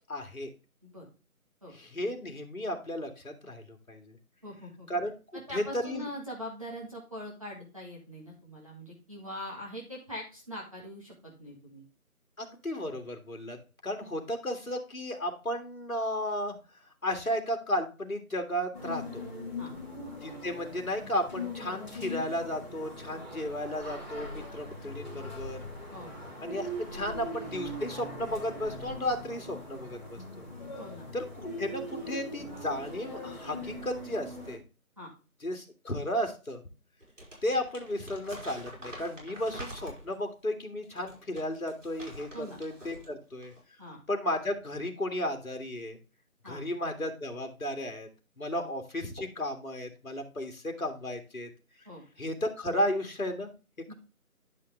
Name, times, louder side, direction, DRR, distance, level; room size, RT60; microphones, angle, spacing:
voice 1, 0.1-0.5 1.7-4.2 4.9-5.1 5.5-6.1 12.4-16.6 17.0-19.2 20.2-25.6 26.4-30.5 31.1-31.2 31.6-34.6 35.4-36.6 37.4-43.5 44.1-46.0 46.4-48.1 48.4-51.5 52.2-53.5, left 1 dB, 65° left, 5 dB, 2.2 m, -34 dB
voice 2, 4.4-4.9 5.3-11.8 19.6-19.7 25.9-26.1 30.8-31.1 35.0-35.1 42.3-42.6 43.8-44.0 46.4-46.6 48.6-48.7 51.8-52.0 53.9-54.0, equal, 25° right, -4 dB, 1.5 m, -42 dB
sound 1, 18.7-34.6, left 1 dB, 30° left, 2.3 m, -41 dB
Crumpling crinkling, 37.0-40.2 40.8-43.1 43.4-43.6, right 1 dB, 55° right, 5.0 m, -46 dB
10.5 x 5.6 x 3.3 m, 0.32 s
figure-of-eight pair, 175°, 44 cm